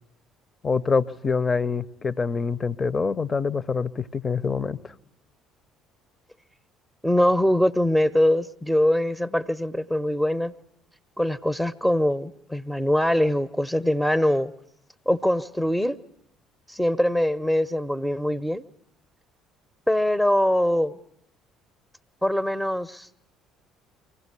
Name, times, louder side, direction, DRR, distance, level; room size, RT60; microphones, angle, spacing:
voice 1, 0.6-4.9, left 5 dB, 30° left, 18 dB, 0.9 m, -25 dB
voice 2, 7.0-10.5 11.2-14.5 15.1-16.0 16.7-18.6 19.9-20.9 22.2-23.1, left 1 dB, ahead, 13 dB, 0.8 m, -23 dB
24.5 x 17.0 x 9.9 m, 0.76 s
hypercardioid pair, 55°, 0 cm